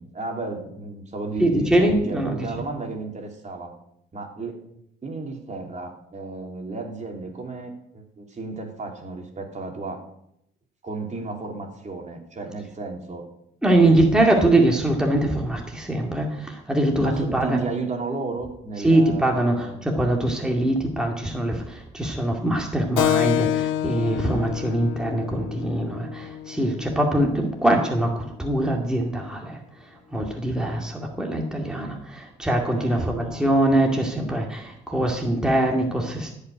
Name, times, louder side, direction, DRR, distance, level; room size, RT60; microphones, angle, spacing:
voice 1, 0.0-3.7 4.1-4.6 5.0-10.0 10.8-13.2 13.8-13.9 14.5-14.7 17.0-19.8 32.7-33.8, right 3 dB, 35° right, 2 dB, 3.0 m, -33 dB
voice 2, 1.4-2.7 13.6-17.6 18.8-29.6 30.1-36.3, right 1 dB, 5° right, 0 dB, 2.2 m, -23 dB
Keyboard (musical), 23.0-28.0, left 12 dB, 85° left, 0.8 m, -28 dB
16.0 x 5.6 x 9.1 m, 0.76 s
cardioid pair, 90°, 20 cm